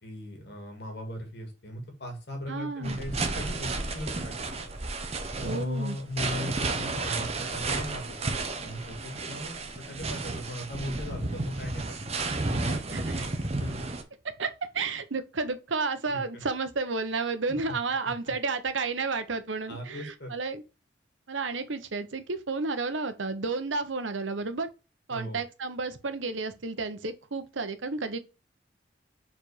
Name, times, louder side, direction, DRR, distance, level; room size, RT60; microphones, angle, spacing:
voice 1, 0.0-4.6 5.4-8.0 8.6-12.0 13.6-13.7 16.1-16.4 17.7-17.8 19.7-20.3 25.1-25.4, left 1 dB, 60° left, 2.1 m, -37 dB
voice 2, 2.5-3.0 5.4-6.0 12.9-13.3 14.2-20.6 21.3-24.7 25.1-28.2, right 4 dB, 90° right, 1.0 m, -32 dB
sound 1, 2.8-14.0, right 3 dB, 35° right, 0.9 m, -32 dB
4.9 x 4.3 x 4.8 m
head